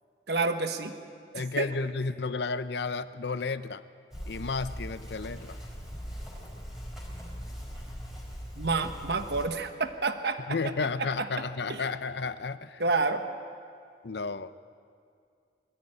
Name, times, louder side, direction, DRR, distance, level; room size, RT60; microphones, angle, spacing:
voice 1, 0.3-0.9 1.6-1.7 8.6-10.4 11.7-11.8 12.8-13.3, right 3 dB, 65° right, 7 dB, 1.2 m, -28 dB
voice 2, 1.3-3.9 4.3-5.6 10.5-12.8 14.0-14.5, left 4 dB, 65° left, 13 dB, 0.6 m, -32 dB
sound 1, 4.1-9.5, equal, ahead, 4.5 m, -40 dB
21.5 x 13.5 x 9.1 m, 2.3 s
head